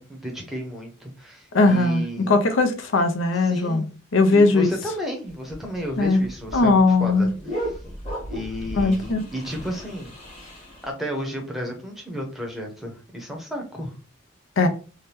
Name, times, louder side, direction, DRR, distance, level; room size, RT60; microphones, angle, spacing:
voice 1, 0.0-2.3 3.3-3.9 4.3-7.8 8.3-10.1 10.8-14.0, equal, ahead, 0.7 m, -33 dB
voice 2, 1.5-3.8 4.1-4.7 6.0-6.2 6.5-7.3 8.7-9.2 14.6-14.7, left 3 dB, 85° left, 0.6 m, -19 dB
sound 1, 5.3-10.9, equal, 30° left, 1.0 m, -35 dB
2.8 x 2.2 x 3.3 m
head